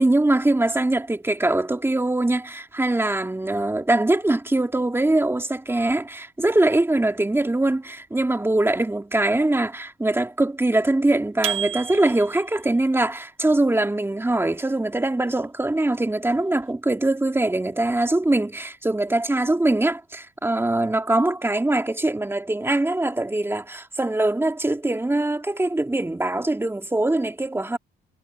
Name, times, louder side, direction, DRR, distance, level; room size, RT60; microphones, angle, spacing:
voice 1, 0.0-27.8, right 2 dB, 10° right, 2.4 m, -22 dB
sound 1, 11.4-12.5, right 11 dB, 80° right, 1.3 m, -30 dB
cardioid pair, 90°, 20 cm